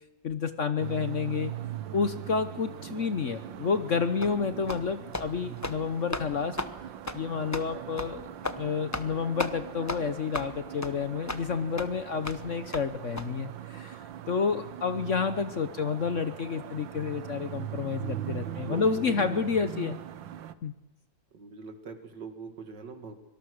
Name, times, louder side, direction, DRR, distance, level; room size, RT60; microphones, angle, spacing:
voice 1, 0.2-1.5 1.9-6.6 7.1-8.3 8.6-13.9 14.3-20.0 20.6-20.7, left 5 dB, 50° left, 11 dB, 1.1 m, -30 dB
sound 1, 0.8-20.5, right 11 dB, 85° right, 1.7 m, -41 dB
sound 2, 4.2-4.3 4.7-4.8 5.1-5.3 5.6-5.8 6.1-6.3 6.6-6.7 7.1-7.2 7.5-7.7 8.0-8.1 8.4-8.6 8.9-9.1 9.4-9.5 9.9-10.0 10.3-10.5 10.8-10.9 11.3-11.4 11.8-11.9 12.2-12.4 12.7-12.8 13.2-13.3, left 2 dB, 15° left, 0.6 m, -33 dB
voice 2, 4.2-4.6 18.5-19.7 21.3-23.1, right 5 dB, 70° right, 8 dB, 2.7 m, -42 dB
25.0 x 19.0 x 6.4 m, 1.1 s
omnidirectional pair, 2.0 m